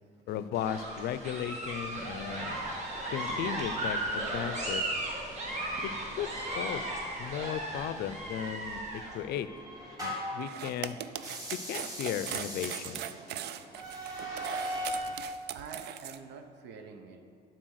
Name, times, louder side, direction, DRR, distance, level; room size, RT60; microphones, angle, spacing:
voice 1, 0.3-2.7 3.1-4.9 5.8-5.9 6.2-9.5 10.0-11.0 11.7-13.1, left 10 dB, 70° left, 13 dB, 0.4 m, -36 dB
sound 1, 0.5-9.1, right 1 dB, 40° right, 1.6 m, -35 dB
sound 2, 8.6-10.4 11.1-15.1, equal, 20° right, 2.0 m, -39 dB
sound 3, 10.4-16.2, right 11 dB, 75° right, 0.4 m, -39 dB
voice 2, 15.5-17.3, right 5 dB, 90° right, 7 dB, 0.8 m, -46 dB
12.0 x 4.2 x 6.4 m, 2.4 s
cardioid pair, 160°, 17 cm